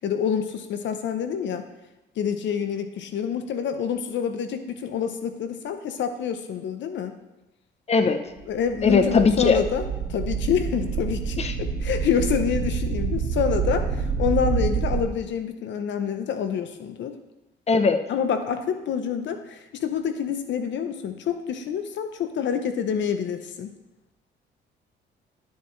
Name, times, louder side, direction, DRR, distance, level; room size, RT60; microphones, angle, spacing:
voice 1, 0.0-1.6 2.2-7.1 8.5-9.8 10.1-17.1 18.1-23.7, left 7 dB, 70° left, 8 dB, 0.7 m, -27 dB
voice 2, 7.9-8.2 8.8-9.6 11.4-11.5 17.7-18.0, left 4 dB, 30° left, 8 dB, 0.7 m, -19 dB
sound 1, 8.4-8.5 8.7-15.0, right 6 dB, 65° right, 2.1 m, -27 dB
12.0 x 7.1 x 3.2 m, 0.99 s
cardioid pair, 90°, 20 cm